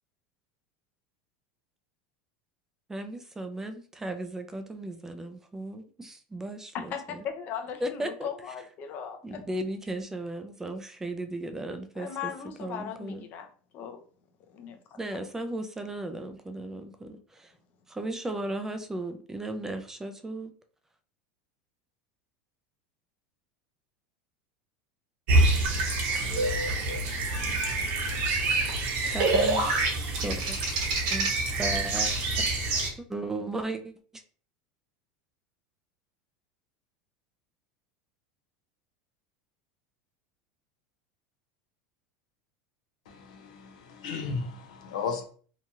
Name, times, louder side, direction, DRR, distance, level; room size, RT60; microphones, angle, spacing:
voice 1, 2.9-7.2 7.8-8.3 9.2-12.3 12.6-13.3 15.0-17.5 17.9-20.5 29.1-30.6 31.1-31.3 31.6-32.1 32.4-32.6 33.0-34.2, right 1 dB, 10° right, 8 dB, 0.3 m, -36 dB
voice 2, 6.7-9.4 12.0-13.5 13.7-14.0 14.5-14.8, left 8 dB, 45° left, 6 dB, 0.5 m, -38 dB
sound 1, 25.3-32.9, right 2 dB, 55° right, 0.9 m, -27 dB
sound 2, 26.1-31.3, right 2 dB, 75° right, 1.2 m, -29 dB
voice 3, 43.1-45.2, left 5 dB, 85° left, 5 dB, 0.6 m, -35 dB
2.9 x 2.3 x 2.7 m, 0.43 s
supercardioid pair, 120°, 4 cm